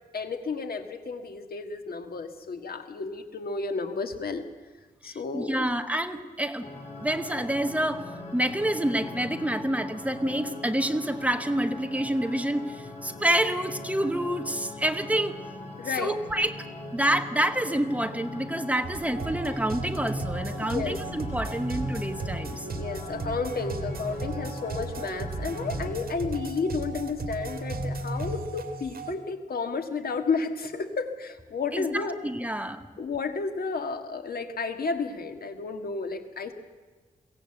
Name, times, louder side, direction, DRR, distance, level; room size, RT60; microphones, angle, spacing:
voice 1, 0.1-4.4 5.0-5.7 15.8-16.2 20.6-21.0 22.7-32.2 33.0-36.5, left 4 dB, 80° left, 7 dB, 1.8 m, -32 dB
voice 2, 5.0-6.7 7.0-8.0 8.3-15.3 15.9-16.5 16.9-22.7 31.7-32.8, right 1 dB, 10° right, 8 dB, 1.0 m, -28 dB
sound 1, 6.6-25.9, left 2 dB, 45° left, 4.2 m, -41 dB
sound 2, 18.8-29.1, right 2 dB, 75° right, 2.4 m, -35 dB
23.0 x 17.0 x 8.0 m, 1.4 s
wide cardioid pair, 150°, 15 cm